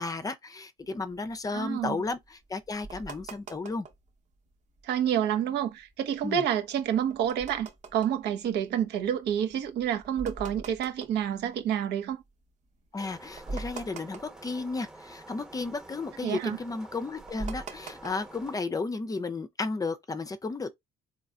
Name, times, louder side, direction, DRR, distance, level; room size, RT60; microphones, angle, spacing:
voice 1, 0.0-3.9 6.2-6.4 12.9-20.7, left 3 dB, 20° left, 0.5 m, -33 dB
sound 1, 0.9-4.1 4.5-5.1 5.6-12.2 12.7-12.8 13.0-15.2 15.4-18.5, right 3 dB, 45° right, 1.0 m, -43 dB
voice 2, 1.5-2.0 4.8-12.2 16.2-16.6, right 9 dB, 80° right, 0.9 m, -29 dB
sound 2, 13.0-18.6, right 2 dB, 5° right, 1.0 m, -49 dB
3.9 x 3.1 x 2.4 m
cardioid pair, 110°, 17 cm